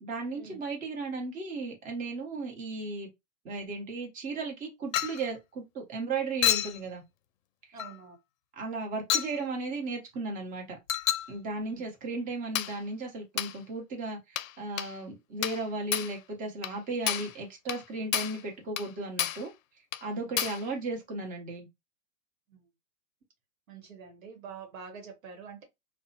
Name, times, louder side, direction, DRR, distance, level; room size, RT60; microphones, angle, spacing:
voice 1, 0.0-3.1 3.4-7.0 8.6-10.8 11.3-19.5 20.0-21.7, right 3 dB, 20° right, 0.9 m, -35 dB
Chink clink, 4.9-5.2 6.4-6.8 7.8-8.0 9.1-9.4 10.9-11.3 12.5-12.8 13.4-13.6 14.4-14.5 14.8-14.9 15.4-15.6 15.9-16.2 16.6-16.8 17.1-17.3 17.7-17.8 18.1-18.4 18.8-18.9 19.2-19.5 19.9-20.0 20.4-20.6, left 10 dB, 75° left, 0.5 m, -30 dB
voice 2, 7.7-8.2 11.6-11.8 23.7-25.6, right 6 dB, 80° right, 1.0 m, -46 dB
2.6 x 2.0 x 2.8 m
hypercardioid pair, 125°, 40 cm